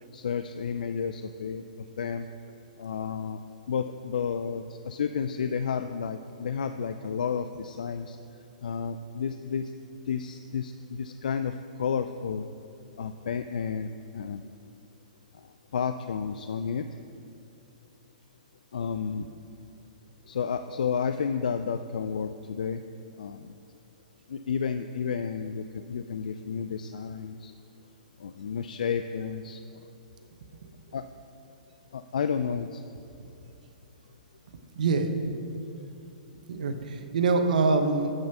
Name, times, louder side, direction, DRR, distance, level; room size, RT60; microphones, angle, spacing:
voice 1, 0.1-1.6 2.0-2.3 2.8-3.4 3.7-8.2 8.6-9.7 10.1-12.5 13.0-13.9 14.1-14.5 15.7-16.9 18.7-19.3 20.3-22.8 23.2-23.5 24.3-27.5 28.2-29.6 30.9-31.0 31.9-32.8, left 6 dB, 75° left, 9 dB, 0.3 m, -31 dB
voice 2, 34.8-35.1 36.5-38.1, right 4 dB, 70° right, 6 dB, 0.9 m, -25 dB
8.1 x 7.4 x 5.6 m, 2.6 s
hypercardioid pair, 125°, 4 cm